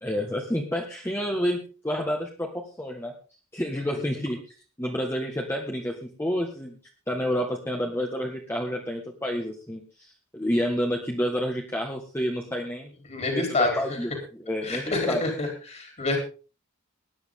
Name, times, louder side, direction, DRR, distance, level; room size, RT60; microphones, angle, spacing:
voice 1, 0.0-3.1 3.5-4.4 4.8-6.8 7.1-12.9 13.2-15.2, equal, 10° left, 0 dB, 1.7 m, -29 dB
voice 2, 13.1-14.0 14.6-16.2, left 3 dB, 35° left, 3 dB, 3.8 m, -28 dB
19.5 x 10.5 x 3.8 m, 0.37 s
head